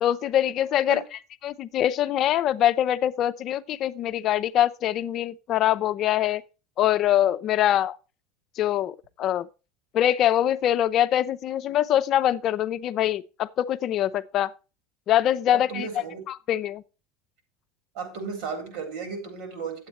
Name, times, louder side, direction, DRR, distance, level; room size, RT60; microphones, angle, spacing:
voice 1, 0.0-1.0 1.4-6.4 6.8-8.0 8.6-9.5 9.9-14.5 15.1-15.9 16.3-16.8, left 11 dB, 50° left, 0.5 m, -23 dB
voice 2, 15.5-16.2 17.9-19.9, right 5 dB, 75° right, 3.9 m, -34 dB
9.0 x 8.0 x 4.2 m
supercardioid pair, 115°, 0 cm